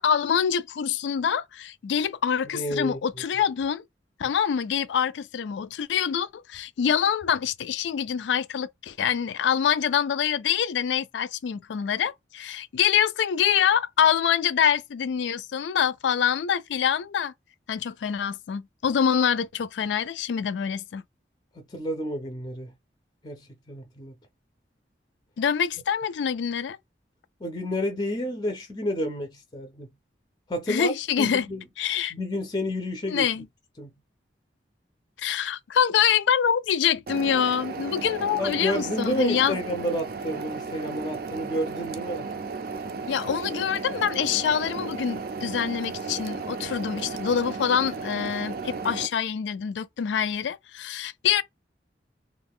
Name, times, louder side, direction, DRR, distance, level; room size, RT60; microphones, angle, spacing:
voice 1, 0.0-3.8 4.2-17.3 17.7-21.0 25.4-26.8 30.7-31.5 31.8-32.1 33.1-33.5 35.2-39.6 43.1-51.4, left 8 dB, 90° left, 0.3 m, -25 dB
voice 2, 2.5-3.0 21.5-22.7 23.2-24.1 27.4-29.9 30.5-30.9 31.2-31.6 32.1-33.3 33.8-33.9 38.4-42.3, equal, 25° left, 0.5 m, -30 dB
sound 1, 37.1-49.1, right 4 dB, 55° right, 0.4 m, -34 dB
2.5 x 2.3 x 3.5 m
head